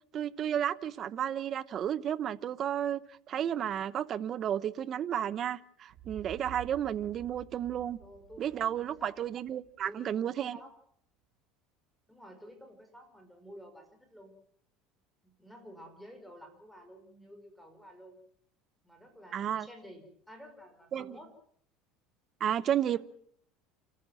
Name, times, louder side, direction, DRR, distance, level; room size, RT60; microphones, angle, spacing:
voice 1, 0.1-3.0 3.3-8.0 8.4-10.6 19.3-19.7 20.9-21.1 22.4-23.0, right 10 dB, 35° right, 0.9 m, -32 dB
sound 1, 5.9-9.8, right 11 dB, 50° right, 1.8 m, -51 dB
voice 2, 8.0-9.2 9.8-10.7 12.1-14.3 15.2-18.2 18.8-21.3 22.9-23.0, equal, ahead, 5.2 m, -52 dB
29.0 x 14.0 x 7.7 m
cardioid pair, 145°, 0 cm